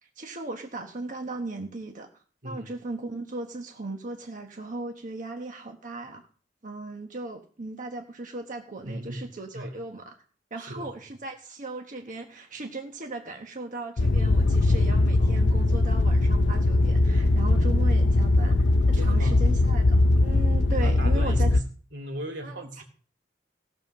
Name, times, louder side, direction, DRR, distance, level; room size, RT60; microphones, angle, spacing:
voice 1, 0.0-6.3 6.6-10.2 10.5-21.5 22.4-22.8, right 2 dB, 45° right, 3 dB, 1.1 m, -37 dB
voice 2, 2.4-2.7 8.8-9.8 10.6-10.9 15.2-15.4 18.9-19.5 20.8-21.6 21.9-22.8, right 1 dB, 80° right, 2 dB, 2.9 m, -37 dB
sound 1, 14.0-21.6, left 2 dB, 75° left, 0.6 m, -21 dB
16.0 x 5.7 x 6.3 m, 0.42 s
head